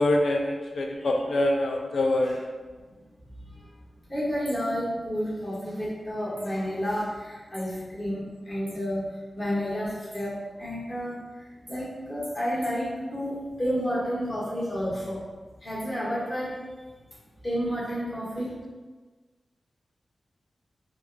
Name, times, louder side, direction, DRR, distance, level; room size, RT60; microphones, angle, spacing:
voice 1, 0.0-2.4, left 1 dB, 80° left, 1 dB, 0.3 m, -24 dB
voice 2, 4.1-15.2 15.6-16.7 17.4-18.5, equal, 30° left, -9 dB, 1.5 m, -31 dB
4.2 x 2.2 x 2.3 m, 1.3 s
wide cardioid pair, 105°, 0 cm